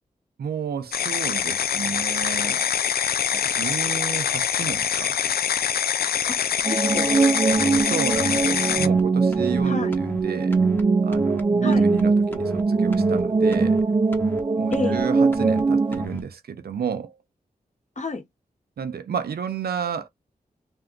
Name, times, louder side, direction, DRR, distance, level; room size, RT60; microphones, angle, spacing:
voice 1, 0.4-2.7 3.3-5.3 7.8-10.6 11.0-13.8 14.6-17.1 18.8-20.1, right 7 dB, 85° right, 0.6 m, -31 dB
sound 1, 0.9-8.9, left 8 dB, 75° left, 0.4 m, -24 dB
sound 2, 6.6-16.1, right 4 dB, 25° right, 0.3 m, -21 dB
voice 2, 6.7-7.8 8.4-8.6 9.6-10.0 11.6-11.9 14.7-15.1 18.0-18.2, left 3 dB, 50° left, 1.0 m, -31 dB
sound 3, 7.5-7.8 8.1-8.4 8.7-9.0 9.3-9.6 9.9-10.2 10.5-10.8 11.1-11.4 11.7-12.0 12.3-12.6 12.9-13.2 13.5-13.8 14.1-14.4 14.7-15.0 15.3-15.6 15.9-16.2, left 1 dB, 15° left, 0.9 m, -35 dB
2.7 x 2.3 x 3.6 m
cardioid pair, 45°, 16 cm